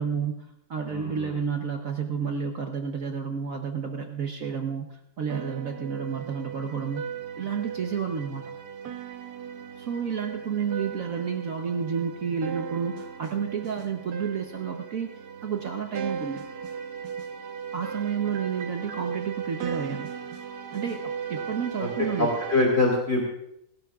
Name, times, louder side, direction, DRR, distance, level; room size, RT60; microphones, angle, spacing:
voice 1, 0.0-4.9 5.2-7.0 7.4-8.5 9.8-15.1 15.4-16.4 17.7-20.1 20.7-22.3, right 7 dB, 60° right, 4 dB, 1.3 m, -30 dB
voice 2, 0.9-1.3 21.8-23.2, left 2 dB, 40° left, -1 dB, 2.6 m, -24 dB
sound 1, 5.3-22.6, right 7 dB, 80° right, 1.6 m, -37 dB
27.0 x 11.5 x 2.4 m, 0.75 s
omnidirectional pair, 1.7 m